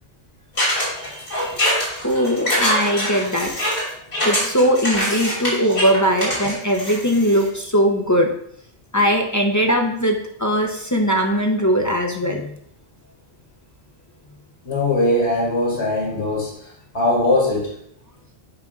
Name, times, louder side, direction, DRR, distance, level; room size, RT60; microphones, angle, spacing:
sound 1, 0.6-7.5, equal, 85° left, 3.1 m, -23 dB
voice 1, 0.8-1.5 2.2-2.3 14.6-17.7, left 2 dB, 65° left, -4 dB, 2.0 m, -22 dB
voice 2, 2.0-3.5 4.2-8.3 8.9-12.5, equal, 25° left, 1 dB, 0.4 m, -20 dB
8.8 x 5.2 x 2.4 m, 0.68 s
omnidirectional pair, 1.2 m